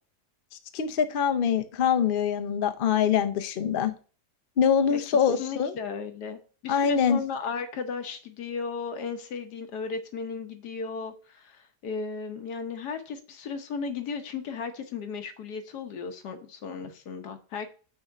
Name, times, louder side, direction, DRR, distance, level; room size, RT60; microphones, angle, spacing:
voice 1, 0.7-3.9 4.6-5.7 6.7-7.2, left 7 dB, 55° left, 8 dB, 0.6 m, -24 dB
voice 2, 5.4-17.7, left 5 dB, 80° left, 7 dB, 1.5 m, -35 dB
6.1 x 3.8 x 5.6 m, 0.37 s
omnidirectional pair, 1.7 m